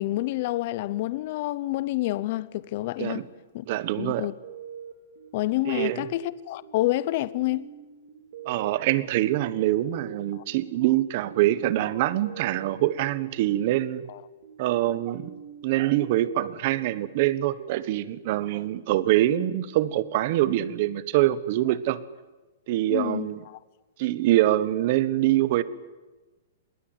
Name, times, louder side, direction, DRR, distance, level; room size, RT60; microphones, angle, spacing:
voice 1, 0.0-3.2 3.5-3.6 4.0-4.3 5.3-7.7 10.3-10.4 14.1-14.2 22.9-23.6, left 17 dB, 35° left, 0.8 m, -28 dB
voice 2, 3.7-4.3 5.6-6.0 8.4-14.0 14.6-15.3 15.6-22.0 22.7-23.4 24.0-25.6, right 14 dB, 35° right, 1.3 m, -24 dB
sound 1, 4.4-20.8, right 7 dB, 60° right, 4.2 m, -46 dB
26.0 x 22.0 x 9.2 m
hypercardioid pair, 175°, 0 cm